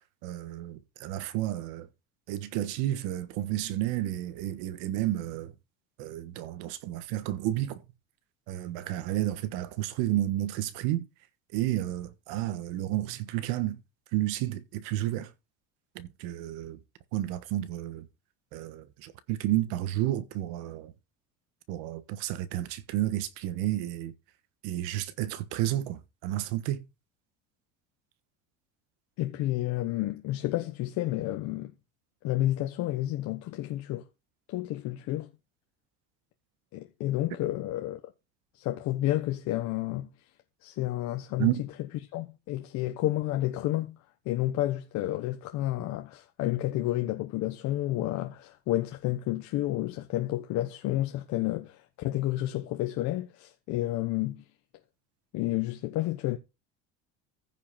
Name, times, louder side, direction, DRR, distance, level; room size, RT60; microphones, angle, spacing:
voice 1, 0.2-1.9 2.3-5.5 6.0-7.8 8.5-11.0 11.5-13.8 14.1-15.3 15.9-16.8 17.1-18.1 18.5-20.9 21.7-24.1 24.6-26.8 41.4-41.6, right 14 dB, 90° right, 1.4 m, -31 dB
voice 2, 29.2-31.7 32.2-34.0 34.5-35.3 36.7-38.0 38.5-40.1 40.6-44.0 44.2-54.4 55.3-56.4, left 15 dB, 60° left, 1.2 m, -30 dB
15.0 x 5.6 x 4.1 m
cardioid pair, 150°, 31 cm